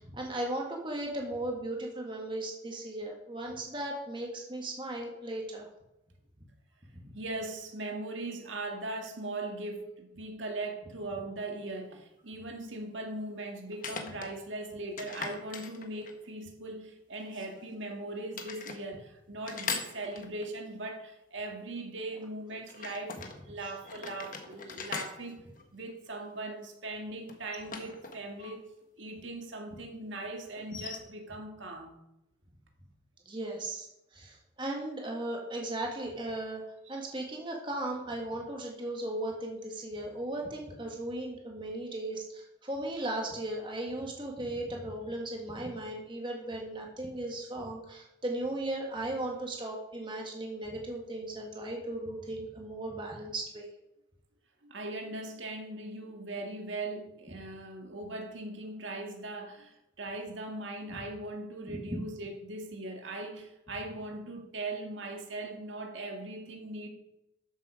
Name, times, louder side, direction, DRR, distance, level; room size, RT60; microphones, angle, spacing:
voice 1, 0.0-5.7 6.9-7.1 33.3-36.6 36.9-53.7 61.7-62.0, right 1 dB, 25° right, 0 dB, 1.8 m, -37 dB
voice 2, 7.1-25.4 25.7-28.7 29.0-32.0 36.9-37.0 54.6-66.9, right 2 dB, 80° right, 2 dB, 2.0 m, -39 dB
sound 1, 11.6-11.7 13.7-14.3 15.0-16.3 17.2-18.0 18.3-18.8 19.5-20.6 22.7-23.4 23.8-26.3 27.3-28.6 28.8-28.9 30.6-31.0, left 5 dB, 45° left, 1.4 m, -40 dB
13.0 x 7.5 x 5.0 m, 0.88 s
head